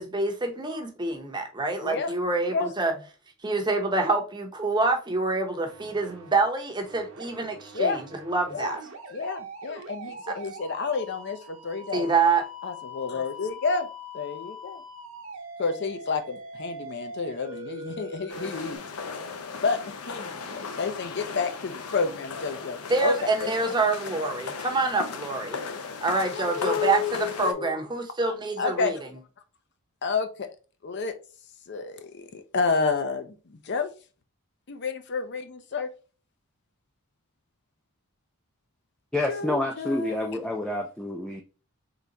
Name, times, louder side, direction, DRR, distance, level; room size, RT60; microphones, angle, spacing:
voice 1, 0.0-2.9 3.4-8.8 11.9-12.4 22.9-25.6 26.0-27.0 27.4-29.0, right 3 dB, 20° right, 0.7 m, -26 dB
voice 2, 1.8-2.1 2.5-2.7 7.7-8.0 8.5-8.7 9.1-12.1 12.6-13.9 14.1-14.8 15.6-18.8 19.6-23.1 23.4-23.5 26.3-27.7 28.6-28.9 30.0-30.5 30.8-31.2 31.7-33.9 34.7-35.9 39.3-40.5, left 4 dB, 50° left, 0.5 m, -30 dB
sound 1, 5.7-6.4 6.9-18.8, equal, 60° right, 0.9 m, -42 dB
sound 2, 18.3-27.5, left 5 dB, 90° left, 0.7 m, -37 dB
voice 3, 39.1-41.4, left 1 dB, 5° left, 0.3 m, -28 dB
3.9 x 3.3 x 2.8 m
head